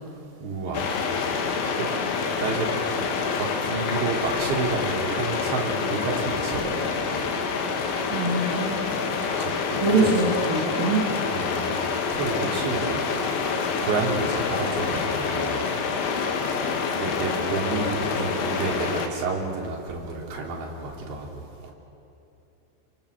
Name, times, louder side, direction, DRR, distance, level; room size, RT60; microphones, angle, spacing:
voice 1, 0.4-1.0 1.3-1.4 1.8-1.9 2.4-2.7 3.0-3.1 3.4-7.1 9.4-10.1 11.3-11.7 12.1-13.0 13.4-15.7 16.9-21.7, right 4 dB, 75° right, -1 dB, 5.4 m, -30 dB
sound 1, 0.7-19.1, left 5 dB, 85° left, 4.0 m, -27 dB
voice 2, 8.1-8.9 9.8-11.1, right 2 dB, 55° right, -3 dB, 4.3 m, -23 dB
28.5 x 27.5 x 6.8 m, 2.8 s
omnidirectional pair, 5.1 m